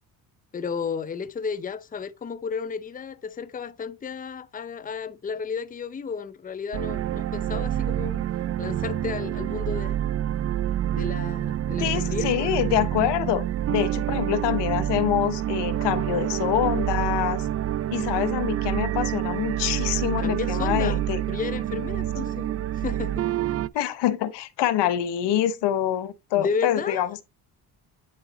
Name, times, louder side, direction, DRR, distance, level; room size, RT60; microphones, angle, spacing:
voice 1, 0.5-8.2 8.6-10.0 10.9-12.5 20.2-21.0 21.3-23.3 23.7-23.9 26.3-27.1, left 5 dB, 20° left, 0.6 m, -33 dB
sound 1, 6.7-23.7, right 12 dB, 40° right, 0.4 m, -27 dB
voice 2, 11.8-17.5 17.9-21.2 23.7-27.2, left 11 dB, 75° left, 1.0 m, -26 dB
9.5 x 3.9 x 4.0 m
supercardioid pair, 75°, 42 cm